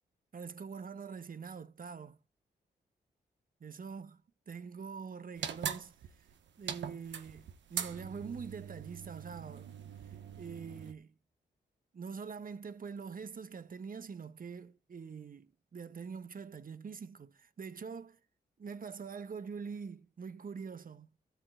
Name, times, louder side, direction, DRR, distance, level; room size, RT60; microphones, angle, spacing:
voice 1, 0.3-2.2 3.6-6.3 6.6-9.7 10.0-11.1 11.9-18.2 18.6-21.1, right 5 dB, 50° right, 1.3 m, -44 dB
sound 1, 5.4-10.9, right 8 dB, 80° right, 1.2 m, -42 dB
13.5 x 4.7 x 7.8 m
supercardioid pair, 45°, 18 cm